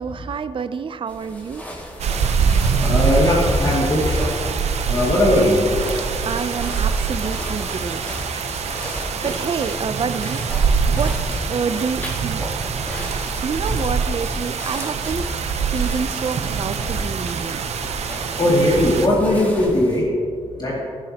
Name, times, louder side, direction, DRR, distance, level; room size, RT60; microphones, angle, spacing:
voice 1, 0.0-1.7 6.2-8.0 9.2-10.4 10.9-11.1 11.5-12.4 13.4-15.3 15.7-17.6, right 6 dB, 50° right, 11 dB, 0.5 m, -27 dB
sound 1, 1.1-20.0, equal, 15° left, 2.1 m, -32 dB
sound 2, 2.0-19.1, right 6 dB, 75° right, 0.7 m, -24 dB
voice 2, 2.7-4.2 4.9-5.6 18.4-20.8, left 1 dB, 40° left, -6 dB, 2.3 m, -19 dB
21.5 x 7.3 x 2.9 m, 2.4 s
cardioid pair, 90°, 11 cm